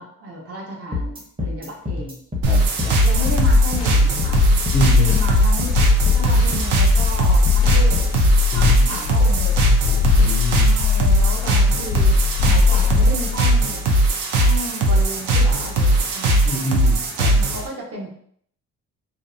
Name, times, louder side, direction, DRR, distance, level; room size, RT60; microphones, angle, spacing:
voice 1, 0.0-2.2 3.0-4.4 5.0-8.0 8.5-9.6 10.6-13.8 14.4-16.5 17.2-18.2, right 1 dB, 45° right, -2 dB, 0.8 m, -33 dB
sound 1, 0.9-8.2, left 3 dB, 15° right, 0.6 m, -27 dB
sound 2, 2.4-17.7, right 1 dB, 75° right, 0.6 m, -18 dB
voice 2, 2.5-3.0 4.7-5.2 8.5-8.7 9.6-10.8 16.5-17.4, left 2 dB, 15° left, -2 dB, 0.3 m, -26 dB
sound 3, 3.1-13.4, left 8 dB, 85° left, 0.5 m, -21 dB
2.7 x 2.1 x 2.5 m, 0.63 s
cardioid pair, 120°, 33 cm